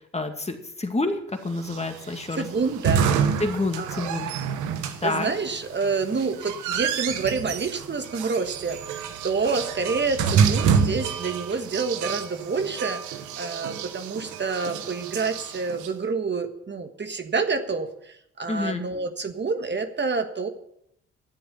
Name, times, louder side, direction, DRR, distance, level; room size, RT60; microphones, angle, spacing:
voice 1, 0.1-2.5 3.4-4.3 5.0-5.3 18.5-18.8, left 2 dB, 20° left, 6 dB, 2.2 m, -28 dB
sound 1, 1.6-15.9, right 7 dB, 90° right, 1.1 m, -28 dB
voice 2, 2.4-3.1 3.8-4.0 5.0-13.0 13.4-20.5, right 4 dB, 40° right, 7 dB, 1.5 m, -28 dB
13.0 x 7.8 x 8.0 m, 0.73 s
supercardioid pair, 60°, 29 cm